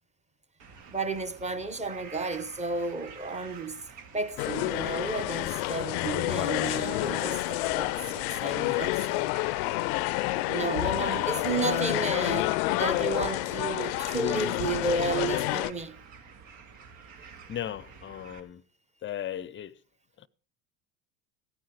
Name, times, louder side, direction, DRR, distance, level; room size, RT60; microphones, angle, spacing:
sound 1, 0.6-18.4, right 6 dB, 65° right, 2.4 m, -49 dB
voice 1, 0.9-3.7 4.1-9.3 10.3-15.9, right 3 dB, 15° right, 1.1 m, -32 dB
sound 2, 4.4-15.7, left 22 dB, 70° left, 0.5 m, -29 dB
voice 2, 17.5-18.6 19.0-19.7 20.2-20.3, left 11 dB, 25° left, 0.6 m, -37 dB
16.0 x 9.4 x 4.8 m
hypercardioid pair, 95°, 47 cm